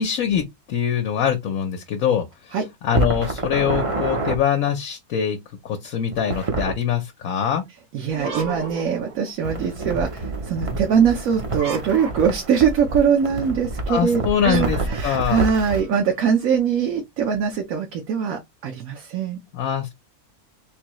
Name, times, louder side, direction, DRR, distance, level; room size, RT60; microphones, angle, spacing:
voice 1, 0.0-2.6 2.8-5.4 5.6-7.6 13.9-15.4 19.5-19.9, left 8 dB, 65° left, 1.1 m, -23 dB
sound 1, 2.9-4.4 6.1-6.8 9.4-15.8, right 3 dB, 35° right, 0.6 m, -27 dB
voice 2, 7.9-19.4, right 7 dB, 65° right, 1.2 m, -22 dB
sound 2, 8.1-9.7 11.5-12.6 14.4-16.3, right 4 dB, 90° right, 1.7 m, -35 dB
3.8 x 2.7 x 3.0 m
omnidirectional pair, 1.6 m